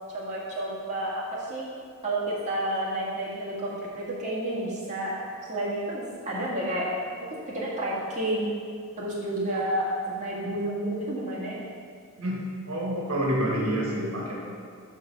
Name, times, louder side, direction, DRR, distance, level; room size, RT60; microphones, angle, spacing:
voice 1, 0.1-1.6 2.0-3.7 3.9-5.1 5.5-6.9 7.2-8.5 9.0-11.6, right 1 dB, 35° right, -7 dB, 1.8 m, -30 dB
voice 2, 12.2-14.6, equal, 75° right, -3 dB, 1.5 m, -28 dB
6.2 x 5.3 x 5.3 m, 2.2 s
head